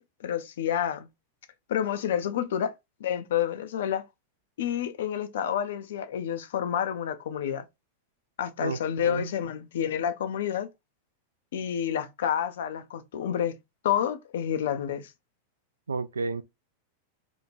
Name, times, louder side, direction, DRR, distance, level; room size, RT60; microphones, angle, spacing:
voice 1, 0.2-1.1 1.7-2.7 3.0-4.1 4.6-7.7 8.4-10.7 11.5-13.6 13.8-15.1, left 9 dB, 60° left, 0.4 m, -29 dB
voice 2, 8.6-9.3 15.9-16.4, right 4 dB, 75° right, 0.3 m, -31 dB
3.0 x 2.1 x 2.4 m
figure-of-eight pair, 90°, 0 cm